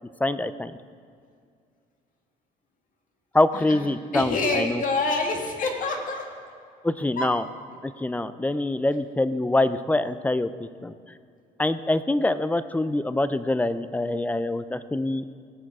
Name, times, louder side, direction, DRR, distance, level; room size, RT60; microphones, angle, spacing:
voice 1, 0.2-0.7 3.3-4.8 6.8-7.4 7.8-10.9 11.6-15.2, left 2 dB, 10° left, 13 dB, 0.4 m, -25 dB
voice 2, 4.1-6.3 7.2-7.3, left 3 dB, 50° left, 2 dB, 1.9 m, -26 dB
17.5 x 6.4 x 4.7 m, 2.3 s
cardioid pair, 110°, 17 cm